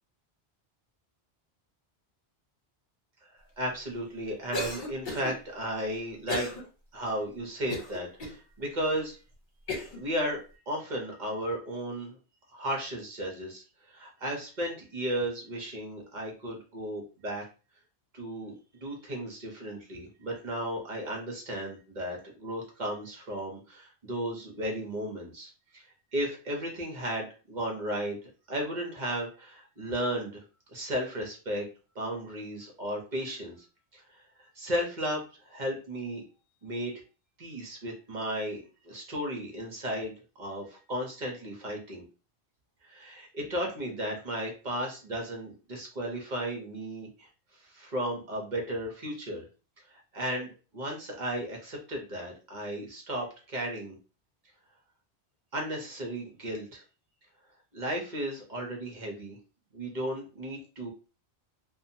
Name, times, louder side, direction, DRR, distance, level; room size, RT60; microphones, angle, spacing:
voice 1, 3.6-6.6 6.9-9.2 9.9-10.4 10.7-12.2 12.5-13.6 13.9-17.4 18.1-25.8 26.1-28.2 28.5-30.4 30.7-31.7 31.9-33.6 33.9-36.2 36.6-36.9 37.4-40.1 40.4-42.1 42.8-47.3 47.6-49.5 49.9-54.0 55.5-56.8 57.7-59.4 59.7-60.9, right 1 dB, 45° right, 0 dB, 0.9 m, -34 dB
Cough, 4.5-5.3 6.3-6.6 7.1-7.2 7.7-8.4 9.0-9.1 9.7-10.0, left 3 dB, 50° left, 0.9 m, -35 dB
2.7 x 2.2 x 2.7 m, 0.34 s
omnidirectional pair, 1.1 m